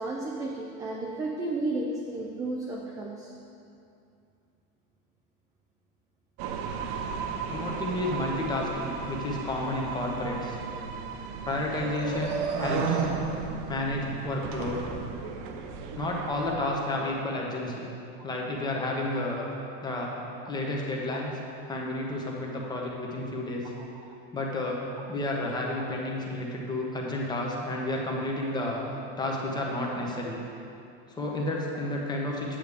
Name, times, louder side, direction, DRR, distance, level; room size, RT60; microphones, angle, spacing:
voice 1, 0.0-3.3 21.1-21.2 23.8-23.9, right 2 dB, 10° right, -2 dB, 0.4 m, -33 dB
sound 1, 6.4-16.5, right 5 dB, 50° right, 0.7 m, -34 dB
voice 2, 7.5-10.6 11.4-13.1 13.7-15.0 16.0-17.9 18.2-19.5 19.8-20.2 20.5-21.4 21.7-23.7 24.3-24.8 25.1-28.8 29.2-30.4 31.1-32.6, left 1 dB, 15° left, -1 dB, 1.0 m, -31 dB
8.7 x 8.1 x 3.5 m, 2.6 s
supercardioid pair, 155°, 31 cm